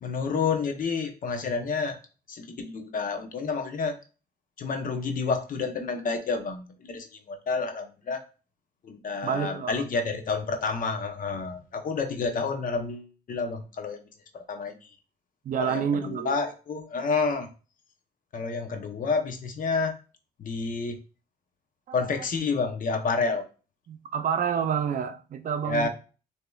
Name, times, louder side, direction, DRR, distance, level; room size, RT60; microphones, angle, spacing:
voice 1, 0.0-2.0 2.3-4.0 4.6-8.2 8.8-14.0 14.3-14.8 15.6-17.5 18.3-20.0 20.4-21.0 21.9-23.4 25.6-25.9, left 4 dB, 50° left, 0.9 m, -29 dB
voice 2, 9.2-9.7 15.4-16.4 21.9-22.1 23.9-25.9, right 7 dB, 50° right, 0.5 m, -28 dB
6.5 x 2.9 x 2.3 m
cardioid pair, 90°, 17 cm